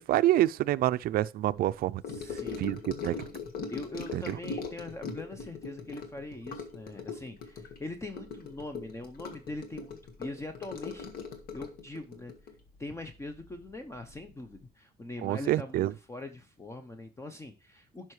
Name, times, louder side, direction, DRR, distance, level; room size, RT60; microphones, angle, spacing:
voice 1, 0.0-2.0 2.6-3.3 4.1-4.2 15.2-15.9, right 14 dB, 60° right, 0.4 m, -27 dB
Gurgling / Sink (filling or washing) / Trickle dribble, 2.0-13.7 13.9-14.3 14.5-14.6, left 5 dB, 60° left, 1.5 m, -40 dB
voice 2, 2.1-2.7 3.7-11.1 11.5-12.3 12.8-18.1, left 2 dB, 15° left, 0.7 m, -42 dB
11.0 x 5.7 x 3.2 m
cardioid pair, 110°, 17 cm